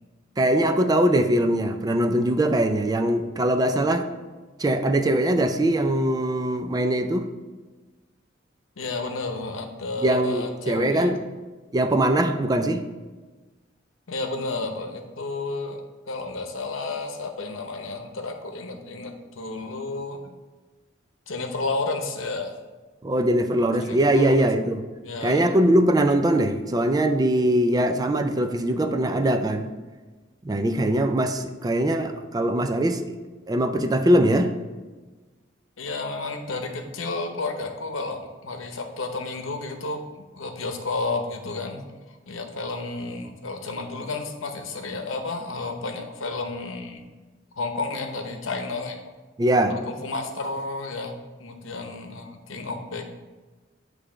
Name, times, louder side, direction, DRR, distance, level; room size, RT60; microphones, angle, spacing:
voice 1, 0.4-4.1 4.6-7.3 10.0-11.2 11.7-12.8 23.0-24.8 25.2-29.7 30.4-33.1 33.5-34.5 49.4-49.8, right 1 dB, 20° right, 7 dB, 0.4 m, -21 dB
voice 2, 8.8-11.1 14.1-15.8 16.1-20.3 21.3-22.6 23.8-24.4 25.0-25.5 35.8-40.0 40.3-41.8 42.3-47.1 47.6-49.0 49.7-53.1, left 3 dB, 85° left, 5 dB, 0.8 m, -31 dB
8.6 x 3.3 x 5.0 m, 1.3 s
head